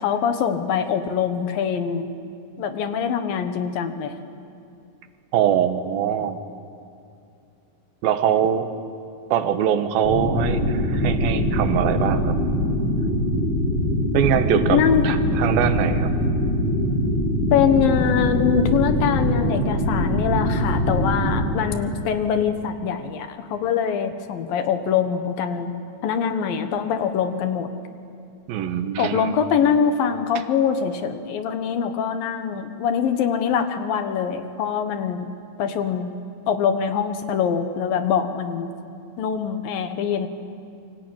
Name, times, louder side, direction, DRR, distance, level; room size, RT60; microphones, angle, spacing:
voice 1, 0.0-2.1 2.6-4.1 14.7-15.0 17.5-25.7 26.0-27.7 29.0-35.3 35.6-36.1 36.5-38.7 39.2-40.3, left 7 dB, 75° left, 8 dB, 3.1 m, -23 dB
voice 2, 5.3-6.4 8.0-8.7 9.3-12.4 14.1-16.1 28.5-29.4, right 9 dB, 80° right, 9 dB, 3.0 m, -22 dB
sound 1, 10.0-21.4, equal, 40° left, 8.1 m, -22 dB
27.0 x 23.5 x 8.9 m, 2.5 s
omnidirectional pair, 4.2 m